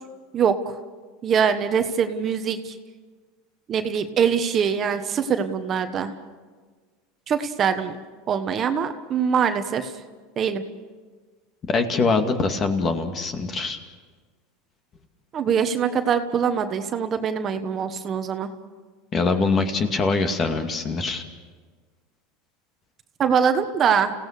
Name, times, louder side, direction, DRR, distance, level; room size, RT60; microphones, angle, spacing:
voice 1, 0.3-0.7 1.2-2.8 3.7-6.1 7.3-8.0 8.3-9.9 10.4-10.6 15.3-18.5 23.2-24.1, right 7 dB, 35° right, 8 dB, 1.3 m, -23 dB
voice 2, 11.7-13.8 19.1-21.2, left 4 dB, 30° left, 6 dB, 2.2 m, -23 dB
29.0 x 17.0 x 6.6 m, 1.5 s
supercardioid pair, 125°, 0 cm